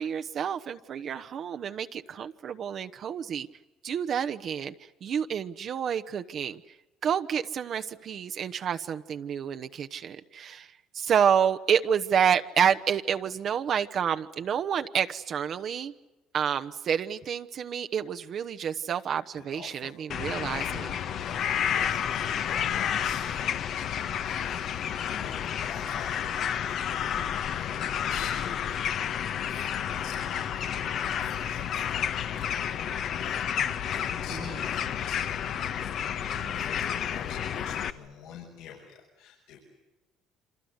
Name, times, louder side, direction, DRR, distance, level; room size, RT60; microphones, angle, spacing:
voice 1, 0.0-3.5 3.8-4.7 5.0-6.6 7.0-10.7 10.9-15.9 16.3-20.9 27.2-27.3 36.3-36.6, right 8 dB, 50° right, 8 dB, 1.1 m, -29 dB
voice 2, 19.3-19.9 20.4-20.7 21.0-21.4 21.7-32.6 33.0-33.6 33.9-39.6, left 7 dB, 80° left, -2 dB, 6.8 m, -47 dB
sound 1, 20.1-37.9, left 9 dB, 55° left, 1.3 m, -30 dB
28.5 x 26.0 x 8.2 m, 1.1 s
cardioid pair, 100°, 0 cm